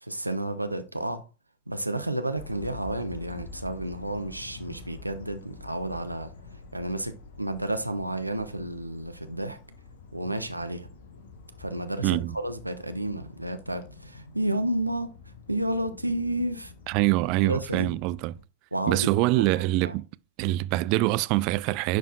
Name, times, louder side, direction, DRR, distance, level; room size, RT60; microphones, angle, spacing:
voice 1, 0.0-1.3 1.7-6.3 6.7-9.6 10.1-10.9 11.6-15.1 15.5-16.7 17.4-17.9 18.7-19.5 19.8-19.9, right 1 dB, 85° right, 0.8 m, -31 dB
sound 1, 2.4-18.4, left 3 dB, 60° left, 1.1 m, -47 dB
voice 2, 12.0-12.4 16.9-18.3 18.9-20.1 20.4-22.0, right 18 dB, 45° right, 0.3 m, -24 dB
10.5 x 4.6 x 2.4 m
figure-of-eight pair, 90°, 0 cm